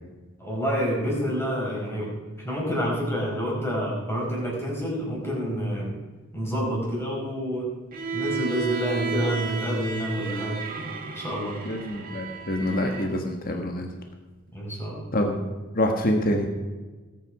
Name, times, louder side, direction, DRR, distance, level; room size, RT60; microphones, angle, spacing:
voice 1, 0.4-2.1 2.4-5.9 6.3-7.7 8.1-10.6 11.1-11.6 14.5-15.0, equal, 10° left, -4 dB, 5.0 m, -28 dB
Bowed string instrument, 7.9-13.1, right 5 dB, 45° right, 1.9 m, -33 dB
voice 2, 11.6-13.9 15.1-15.4 15.7-16.5, left 1 dB, 45° left, 4 dB, 1.5 m, -26 dB
19.5 x 9.4 x 4.9 m, 1.3 s
head